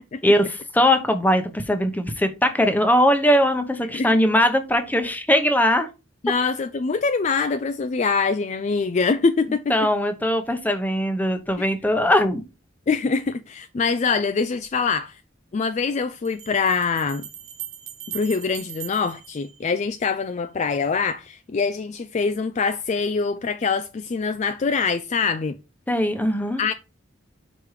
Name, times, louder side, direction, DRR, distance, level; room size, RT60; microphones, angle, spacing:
voice 1, 0.2-5.9 9.7-12.4 25.9-26.6, equal, 10° left, 0.8 m, -20 dB
voice 2, 6.2-9.6 11.6-11.7 12.9-15.2 15.5-17.3 18.1-25.6 26.6-26.7, left 4 dB, 35° left, 0.3 m, -24 dB
sound 1, 14.6-14.7 16.2-20.2, right 11 dB, 90° right, 1.4 m, -40 dB
5.2 x 4.9 x 4.7 m
head